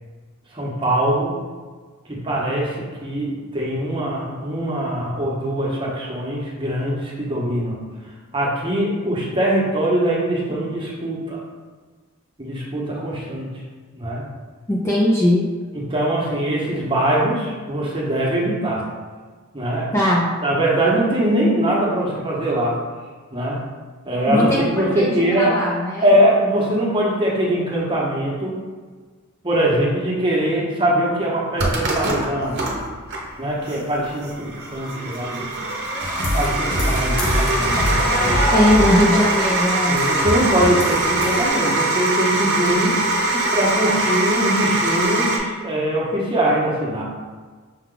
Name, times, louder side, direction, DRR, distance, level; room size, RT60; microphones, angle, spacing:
voice 1, 0.5-1.3 2.1-7.8 8.3-11.4 12.4-13.5 13.9-14.2 15.7-18.9 19.5-19.9 20.4-22.8 23.3-23.6 24.0-25.5 26.0-28.5 29.4-32.6 33.4-35.5 36.4-38.5 39.9-43.0 43.5-47.0, right 1 dB, 25° right, -4 dB, 0.9 m, -22 dB
voice 2, 14.7-15.5 19.9-20.3 24.3-26.1 38.5-40.0, left 1 dB, 15° left, -4 dB, 0.4 m, -19 dB
sound 1, 31.6-45.4, right 2 dB, 50° right, 0.8 m, -22 dB
sound 2, 36.0-41.5, equal, 40° left, 0.8 m, -24 dB
5.5 x 2.4 x 3.8 m, 1.4 s
head